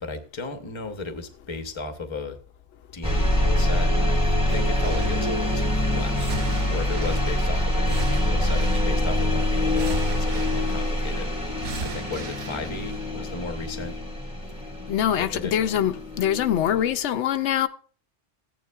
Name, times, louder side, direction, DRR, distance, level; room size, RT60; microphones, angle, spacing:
voice 1, 0.0-2.4 2.9-4.2 4.5-6.3 6.7-11.5 11.8-14.0 15.2-15.6, left 3 dB, 30° left, 0.8 m, -35 dB
sound 1, 3.0-16.9, left 1 dB, 5° right, 1.5 m, -25 dB
sound 2, 4.5-5.5 6.1-9.2 9.7-11.1 11.6-13.0 13.4-13.5, right 5 dB, 50° right, 0.7 m, -38 dB
voice 2, 14.9-17.7, left 10 dB, 85° left, 0.9 m, -24 dB
15.0 x 9.3 x 2.3 m
omnidirectional pair, 1.2 m